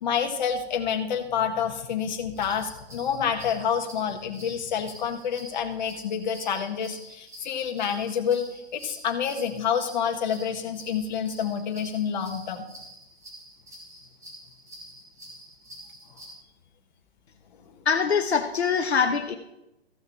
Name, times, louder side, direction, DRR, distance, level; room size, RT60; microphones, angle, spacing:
voice 1, 0.0-8.5 8.7-12.7, left 7 dB, 45° left, 5 dB, 1.6 m, -28 dB
sound 1, 2.3-16.3, right 1 dB, 10° right, 2.4 m, -47 dB
voice 2, 17.8-19.4, left 6 dB, 75° left, 6 dB, 1.1 m, -23 dB
15.0 x 6.6 x 4.6 m, 0.88 s
hypercardioid pair, 140°, 33 cm